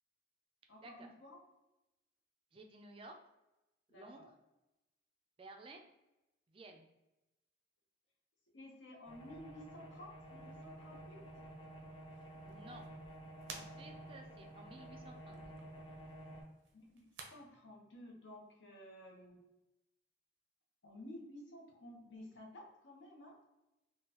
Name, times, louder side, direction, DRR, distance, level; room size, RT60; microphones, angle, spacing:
voice 1, 0.7-1.4 3.9-4.3 8.5-11.2 16.7-19.4 20.8-23.4, left 1 dB, 75° left, -1 dB, 0.9 m, -54 dB
voice 2, 2.5-3.2 3.9-4.2 5.4-5.8 6.5-6.8 12.4-12.9 13.5-15.5, right 2 dB, 30° right, 3 dB, 0.3 m, -54 dB
sound 1, 9.0-16.4, right 1 dB, 30° left, 0.6 m, -51 dB
sound 2, 10.2-17.3, right 4 dB, 85° right, 0.6 m, -58 dB
3.6 x 2.3 x 2.8 m, 0.96 s
head